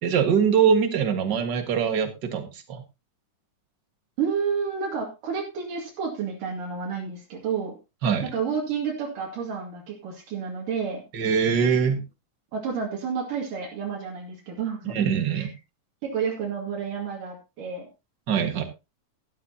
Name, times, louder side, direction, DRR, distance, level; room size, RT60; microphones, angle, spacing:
voice 1, 0.0-2.8 8.0-8.3 11.1-12.0 14.9-15.5 18.3-18.6, right 7 dB, 40° right, 7 dB, 1.8 m, -23 dB
voice 2, 4.2-7.7 8.3-11.0 12.5-15.0 15.3-15.5 16.0-17.9, right 6 dB, 80° right, -1 dB, 3.8 m, -30 dB
13.0 x 12.5 x 2.8 m, 0.26 s
omnidirectional pair, 3.8 m